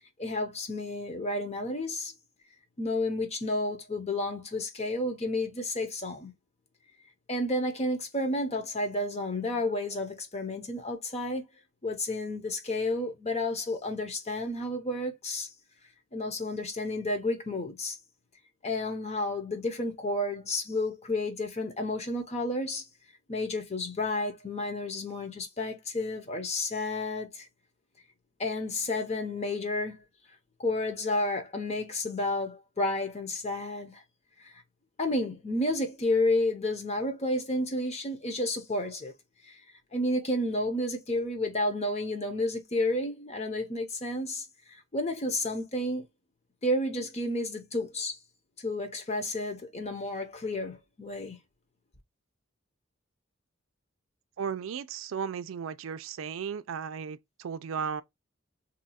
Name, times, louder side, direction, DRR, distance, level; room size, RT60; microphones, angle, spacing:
voice 1, 0.2-2.1 2.8-6.3 7.3-11.5 11.8-15.5 16.1-18.0 18.6-22.8 23.3-27.5 28.4-30.0 30.6-34.0 34.4-34.5 35.0-39.1 39.4-39.6 39.9-46.1 46.6-48.1 48.6-51.4, left 1 dB, 35° left, 0.8 m, -31 dB
voice 2, 54.4-58.0, right 7 dB, 85° right, 0.4 m, -35 dB
2.8 x 2.3 x 4.1 m
head